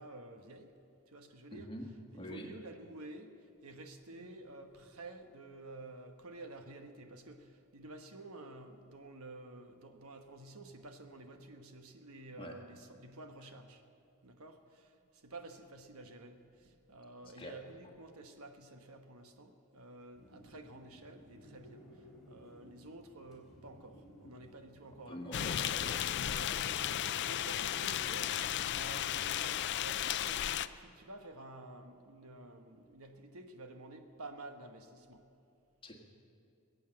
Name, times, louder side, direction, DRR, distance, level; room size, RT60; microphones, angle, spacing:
voice 1, 0.0-1.7 2.2-13.9 14.2-25.2 26.2-35.4, right 2 dB, 70° right, 6 dB, 1.2 m, -51 dB
voice 2, 1.5-1.8 2.1-2.5 12.4-12.5 17.2-17.6 25.1-26.0 35.8-35.9, equal, 25° left, 2 dB, 1.6 m, -45 dB
sound 1, 20.1-29.6, equal, ahead, 3.5 m, -56 dB
sound 2, 25.3-30.7, left 11 dB, 50° left, 0.4 m, -34 dB
21.0 x 8.4 x 7.6 m, 2.5 s
head